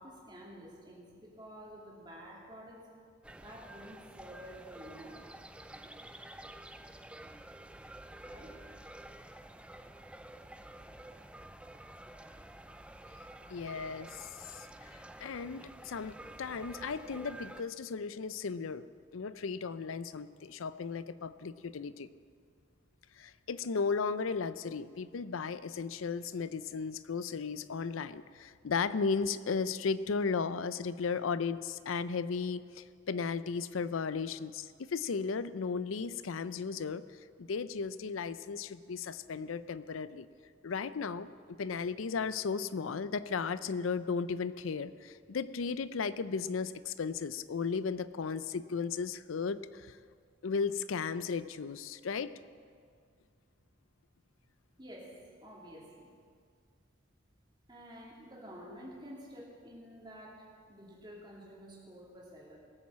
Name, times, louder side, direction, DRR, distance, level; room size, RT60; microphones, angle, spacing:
voice 1, 0.0-2.9 3.3-5.3 8.2-8.6 54.8-55.2 55.4-56.2 57.7-62.6, equal, 20° right, -4 dB, 2.9 m, -50 dB
sound 1, 3.2-17.6, right 1 dB, 5° right, 0.4 m, -50 dB
voice 2, 13.5-14.3 14.6-14.7 15.2-18.8 19.1-22.1 23.2-37.0 37.4-40.3 40.6-41.3 41.6-50.0 50.4-52.3, left 5 dB, 85° left, 15 dB, 0.5 m, -35 dB
18.5 x 7.3 x 7.4 m, 2.1 s
head